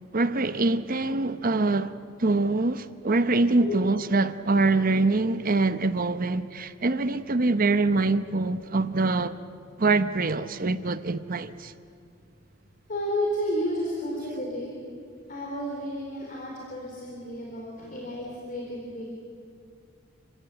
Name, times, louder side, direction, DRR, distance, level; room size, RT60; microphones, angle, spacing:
voice 1, 0.1-1.9 2.2-9.3 9.8-11.7, right 3 dB, 45° right, 0.8 m, -24 dB
voice 2, 3.5-3.9 12.9-14.8 15.3-19.0, equal, 45° left, 4.1 m, -32 dB
29.5 x 16.0 x 9.1 m
head